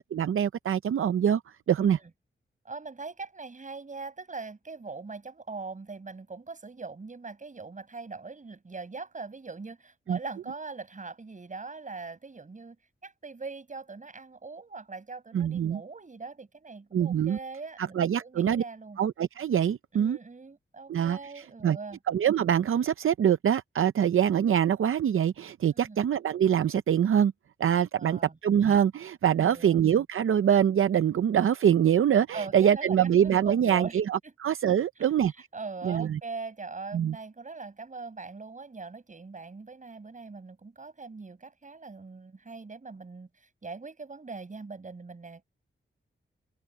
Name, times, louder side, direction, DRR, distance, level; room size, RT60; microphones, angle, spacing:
voice 1, 0.0-1.4 1.7-2.0 10.1-10.2 15.3-15.8 16.9-17.4 17.8-18.6 19.0-20.2 20.9-21.8 22.1-27.3 27.6-35.3 35.8-36.2 36.9-37.2, right 9 dB, 80° right, 0.5 m, -24 dB
voice 2, 1.8-2.1 2.7-12.8 13.0-19.0 19.9-22.0 25.7-26.0 28.0-28.4 29.4-29.8 32.3-33.0 33.2-34.0 34.2-34.3 35.0-45.4, right 4 dB, 35° right, 7.0 m, -41 dB
open air
wide cardioid pair, 160°, 21 cm